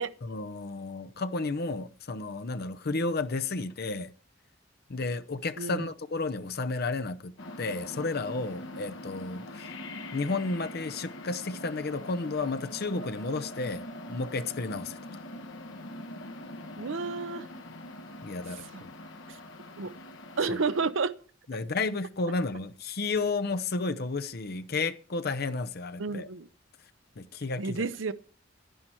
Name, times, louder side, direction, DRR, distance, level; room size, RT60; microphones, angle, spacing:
voice 1, 0.2-4.1 4.9-9.7 10.1-15.2 18.2-18.9 20.5-20.6 21.5-26.3 27.2-27.9, left 3 dB, 55° left, 0.7 m, -32 dB
voice 2, 5.6-5.9 16.8-17.5 18.5-18.8 19.3-19.4 19.8-19.9 20.4-21.1 26.0-26.5 27.6-28.1, right 4 dB, 75° right, 0.7 m, -31 dB
sound 1, 7.4-20.9, left 1 dB, 75° left, 1.3 m, -43 dB
11.5 x 10.0 x 4.5 m
head